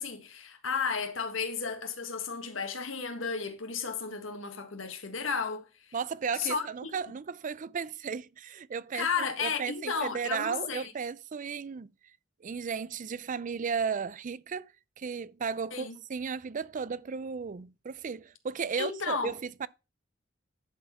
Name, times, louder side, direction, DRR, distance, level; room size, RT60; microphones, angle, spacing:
voice 1, 0.0-5.6 6.4-6.9 8.9-10.9 15.7-16.0 18.8-19.3, left 5 dB, 85° left, 1.6 m, -33 dB
voice 2, 5.9-11.9 12.4-14.7 15.0-19.7, right 6 dB, 40° right, 0.4 m, -35 dB
11.0 x 4.2 x 5.8 m
head